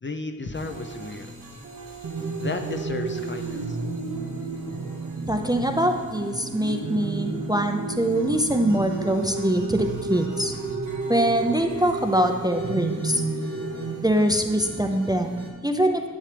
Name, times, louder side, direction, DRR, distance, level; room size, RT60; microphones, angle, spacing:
voice 1, 0.0-1.3 2.4-3.8, left 2 dB, 35° left, 5 dB, 0.6 m, -33 dB
sound 1, 0.5-15.5, right 1 dB, 75° right, 1.7 m, -41 dB
sound 2, 2.0-14.0, right 3 dB, 60° right, 0.7 m, -32 dB
voice 2, 5.3-10.5 11.1-13.2 14.0-16.1, right 1 dB, 10° right, 5 dB, 0.5 m, -23 dB
11.0 x 7.2 x 3.3 m, 1.4 s
wide cardioid pair, 60°, 33 cm